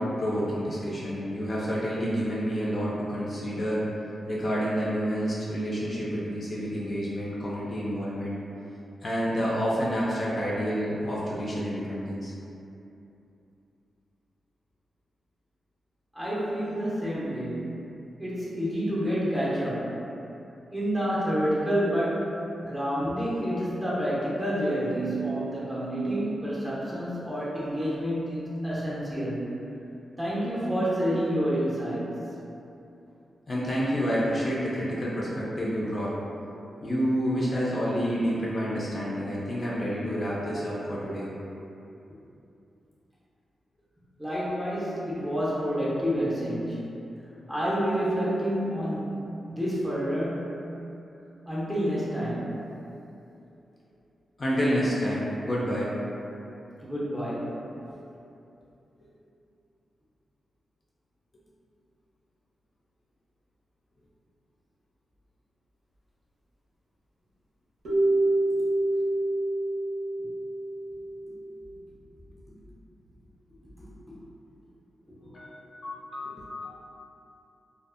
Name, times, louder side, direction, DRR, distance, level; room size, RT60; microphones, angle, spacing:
voice 1, 0.0-3.9 4.3-8.4 9.0-12.3 33.5-36.1 36.8-41.3 54.4-55.9 57.9-58.0 75.2-76.8, equal, 35° left, -7 dB, 0.4 m, -29 dB
voice 2, 16.1-17.8 18.2-20.0 20.7-29.6 30.2-32.2 44.2-46.8 47.5-49.1 49.5-50.5 51.5-52.5 56.8-57.6, equal, 10° right, -8 dB, 0.6 m, -28 dB
sound 1, 67.8-71.6, right 2 dB, 75° right, 0.8 m, -27 dB
2.5 x 2.3 x 2.4 m, 2.8 s
wide cardioid pair, 155°, 0 cm